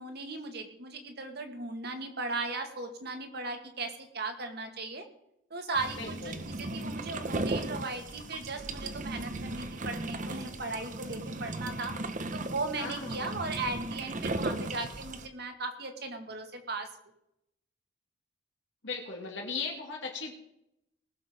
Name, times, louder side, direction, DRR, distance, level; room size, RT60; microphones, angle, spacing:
voice 1, 0.0-5.0 5.5-11.9 12.3-16.9, right 3 dB, 60° right, 6 dB, 1.8 m, -37 dB
sound 1, 5.7-15.3, right 2 dB, 45° right, 0.9 m, -36 dB
voice 2, 6.0-6.5 12.8-13.4 18.8-20.3, left 4 dB, 75° left, -1 dB, 2.3 m, -38 dB
20.0 x 6.9 x 5.1 m, 0.80 s
head